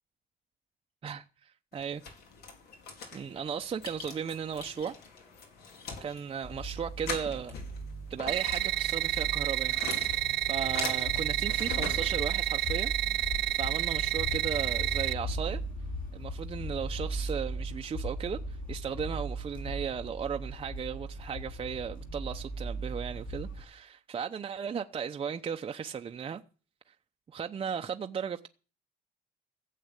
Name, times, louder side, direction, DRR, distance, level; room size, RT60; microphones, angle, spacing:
voice 1, 1.0-2.0 3.1-4.9 6.0-7.6 8.1-13.2 13.5-15.6 16.1-26.4 27.3-28.5, right 7 dB, 35° right, 0.8 m, -36 dB
sound 1, 1.7-12.8, left 5 dB, 70° left, 4.4 m, -43 dB
sound 2, 6.4-23.6, right 1 dB, 55° left, 7.7 m, -38 dB
sound 3, 8.3-15.1, right 17 dB, 85° right, 0.7 m, -30 dB
15.5 x 7.6 x 8.2 m
cardioid pair, 110°, 17 cm